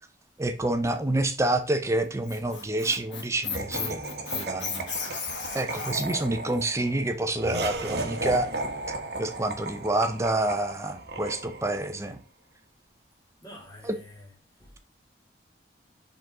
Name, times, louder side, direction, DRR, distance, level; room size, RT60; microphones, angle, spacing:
voice 1, 0.4-4.0 4.3-4.9 5.5-8.5 8.9-12.2 13.8-13.9, right 1 dB, 15° right, 0.6 m, -28 dB
Squeak, 2.0-6.3, left 5 dB, 75° left, 1.5 m, -35 dB
Laughter, 3.5-11.9, right 2 dB, 55° right, 1.0 m, -35 dB
voice 2, 13.4-14.3 14.6-14.8, left 1 dB, 20° left, 2.1 m, -47 dB
5.0 x 3.9 x 4.7 m
head